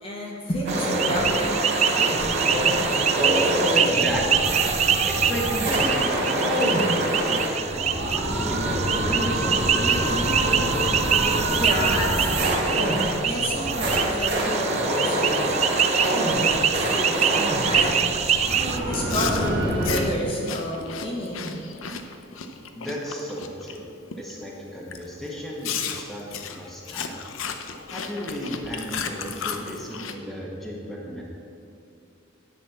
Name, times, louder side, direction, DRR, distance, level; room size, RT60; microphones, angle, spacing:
voice 1, 0.0-1.5 4.7-4.8 11.6-12.8 13.2-18.0 18.2-21.7, equal, 30° left, -2 dB, 1.2 m, -30 dB
sound 1, 0.7-18.8, right 8 dB, 35° right, 0.3 m, -25 dB
sound 2, 0.7-20.1, right 1 dB, 60° right, 1.8 m, -25 dB
voice 2, 3.7-4.5 5.1-8.1 8.4-11.0 22.7-23.9 24.2-26.2 26.5-27.2 27.9-31.2, equal, ahead, -4 dB, 1.3 m, -33 dB
Chewing mastication, 18.9-23.8 24.1-24.4 24.9-25.0 25.6-30.1, left 6 dB, 85° left, 0.6 m, -34 dB
10.5 x 4.2 x 7.2 m, 2.6 s
head